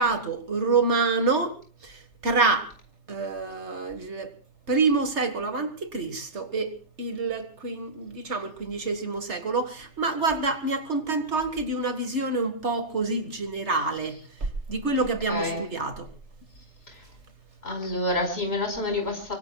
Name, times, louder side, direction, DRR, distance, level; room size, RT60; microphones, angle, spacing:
voice 1, 0.0-1.6 1.8-2.7 3.1-4.3 4.7-16.1, right 3 dB, 60° right, 2.0 m, -27 dB
voice 2, 15.3-15.6 16.9-17.0 17.6-19.4, left 2 dB, 50° left, 5.1 m, -28 dB
25.0 x 24.0 x 2.3 m
omnidirectional pair, 1.3 m